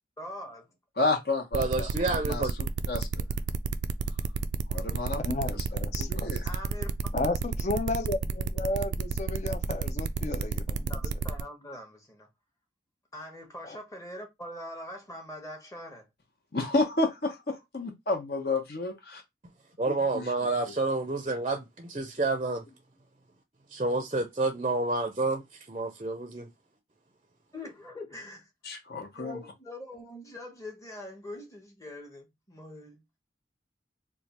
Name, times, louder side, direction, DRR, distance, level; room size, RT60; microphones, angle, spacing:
voice 1, 0.2-0.7 6.4-7.0 10.9-12.3 13.1-16.1 27.5-28.5 29.1-33.0, left 1 dB, 20° left, 0.9 m, -43 dB
voice 2, 1.0-2.4 2.9-3.2 4.7-5.2 5.5-5.6 6.0-6.5 16.5-19.2 19.9-20.3 28.6-29.4, left 2 dB, 60° left, 1.0 m, -31 dB
voice 3, 1.5-2.5 19.8-22.6 23.7-26.5, right 3 dB, 30° right, 0.5 m, -29 dB
sound 1, 1.5-11.4, right 5 dB, 90° right, 0.3 m, -31 dB
voice 4, 5.2-6.3 7.1-10.9 13.6-13.8, left 2 dB, 40° left, 0.5 m, -33 dB
3.2 x 2.3 x 4.1 m
head